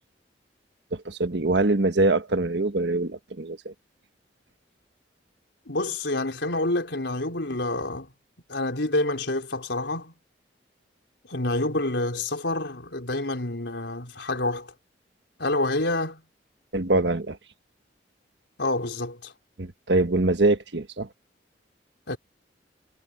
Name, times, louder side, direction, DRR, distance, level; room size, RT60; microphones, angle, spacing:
voice 1, 0.9-3.7 16.7-17.4 19.6-21.1, right 2 dB, 75° right, 1.5 m, -24 dB
voice 2, 5.7-8.1 8.5-10.1 11.3-14.7 15.4-16.2 18.6-19.3 22.1-22.2, left 2 dB, 85° left, 4.0 m, -27 dB
head